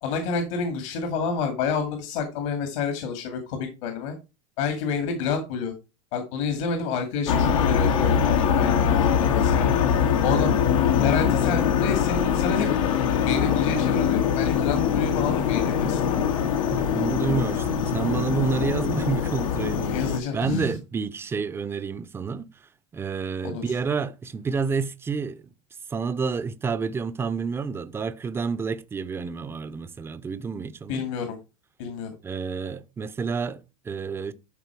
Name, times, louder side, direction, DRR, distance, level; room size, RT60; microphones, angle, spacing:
voice 1, 0.0-4.1 4.6-5.7 6.1-9.8 10.2-10.5 11.0-12.7 13.2-16.3 19.8-20.8 23.4-23.7 30.9-31.4 31.8-32.1, left 5 dB, 70° left, 2.3 m, -29 dB
sound 1, 7.3-20.2, left 7 dB, 90° left, 1.9 m, -23 dB
voice 2, 16.7-20.0 20.3-22.4 22.9-25.4 25.9-31.0 32.2-34.3, right 5 dB, 15° right, 0.6 m, -29 dB
12.0 x 4.1 x 4.7 m
supercardioid pair, 145°, 17 cm